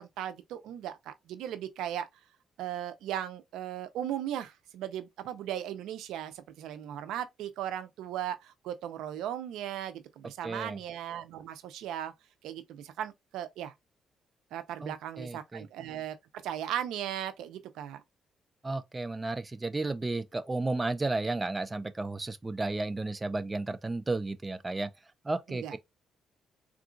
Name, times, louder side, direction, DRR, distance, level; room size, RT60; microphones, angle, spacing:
voice 1, 0.0-2.1 2.6-12.1 12.4-13.7 14.5-16.2 16.4-18.0 25.5-25.7, right 11 dB, 85° right, 0.4 m, -37 dB
voice 2, 10.4-10.8 14.8-15.7 18.6-24.9 25.2-25.8, right 2 dB, 20° right, 0.4 m, -33 dB
3.7 x 2.4 x 2.4 m
cardioid pair, 90°, 0 cm